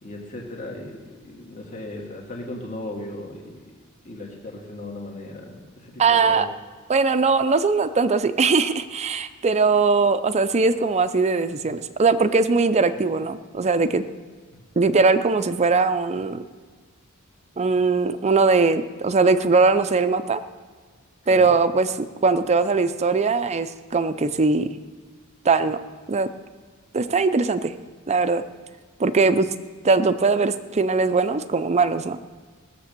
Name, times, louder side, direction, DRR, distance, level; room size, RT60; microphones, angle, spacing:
voice 1, 0.0-3.6 4.0-6.4 14.5-14.6 21.2-21.5, left 1 dB, 35° left, -1 dB, 1.9 m, -37 dB
voice 2, 6.0-6.5 6.9-14.0 14.8-16.4 17.6-20.4 21.3-24.7 25.4-25.8 26.1-26.3 26.9-27.7 28.1-28.4 29.0-29.5 29.8-32.2, right 4 dB, 30° right, 11 dB, 0.5 m, -20 dB
17.5 x 7.5 x 6.8 m, 1.5 s
head